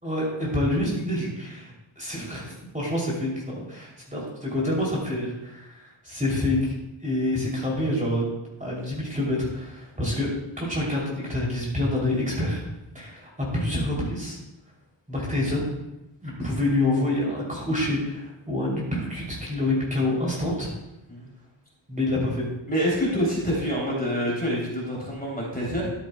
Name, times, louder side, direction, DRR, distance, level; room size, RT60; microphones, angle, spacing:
voice 1, 0.0-6.7 7.0-8.3 8.6-10.3 10.6-12.6 12.9-14.4 15.1-15.7 16.2-20.7 21.9-22.5, left 1 dB, 15° right, -5 dB, 3.0 m, -27 dB
voice 2, 22.7-25.9, equal, 20° left, -4 dB, 3.1 m, -26 dB
12.0 x 10.0 x 2.3 m, 0.91 s
wide cardioid pair, 100°, 49 cm